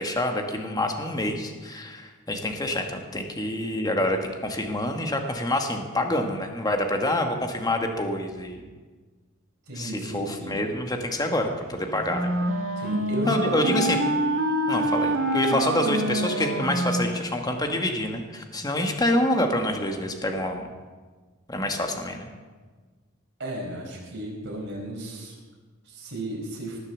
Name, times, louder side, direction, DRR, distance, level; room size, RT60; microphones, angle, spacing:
voice 1, 0.0-8.6 9.7-12.3 13.3-14.0 14.7-20.7 21.5-22.3, left 1 dB, 20° left, 4 dB, 1.3 m, -27 dB
voice 2, 9.7-10.6 12.8-13.6 23.4-25.4 25.8-26.8, right 1 dB, 55° right, -2 dB, 4.8 m, -34 dB
Wind instrument woodwind instrument, 11.7-17.8, right 1 dB, 85° right, 1.9 m, -26 dB
19.0 x 6.7 x 7.1 m, 1.4 s
head